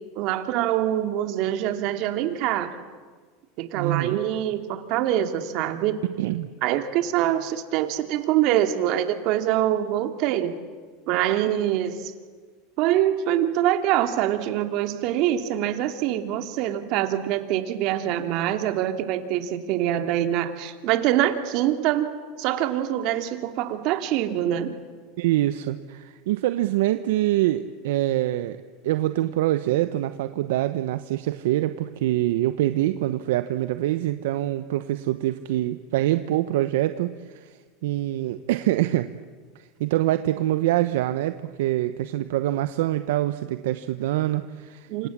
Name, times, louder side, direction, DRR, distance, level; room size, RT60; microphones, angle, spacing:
voice 1, 0.1-2.7 3.6-6.0 6.6-10.5 11.1-12.1 12.8-24.7 44.9-45.1, right 12 dB, 60° right, 7 dB, 2.7 m, -24 dB
voice 2, 3.7-4.2 6.2-6.5 25.2-28.6 28.8-39.1 39.5-45.1, right 14 dB, 80° right, 10 dB, 1.0 m, -25 dB
28.0 x 26.0 x 7.5 m, 1.5 s
supercardioid pair, 115°, 0 cm